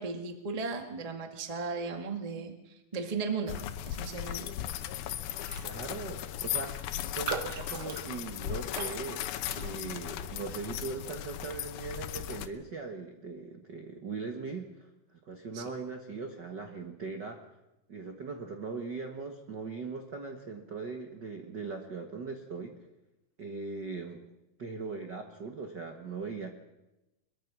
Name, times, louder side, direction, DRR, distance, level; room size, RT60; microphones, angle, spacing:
voice 1, 0.0-2.5 2.9-3.6 3.8-4.5 15.5-15.6, right 4 dB, 20° right, 5 dB, 1.1 m, -35 dB
sound 1, 3.5-12.5, left 12 dB, 90° left, 2.9 m, -37 dB
Raindrop, 5.4-5.7 6.0-6.1 6.5-10.1 10.5-10.8, right 5 dB, 65° right, 1.0 m, -41 dB
voice 2, 5.6-6.7 7.1-9.2 9.6-17.4 17.9-22.8 23.4-24.2 24.6-26.5, right 4 dB, 50° right, 4 dB, 1.3 m, -40 dB
22.5 x 22.5 x 6.2 m, 0.97 s
omnidirectional pair, 4.2 m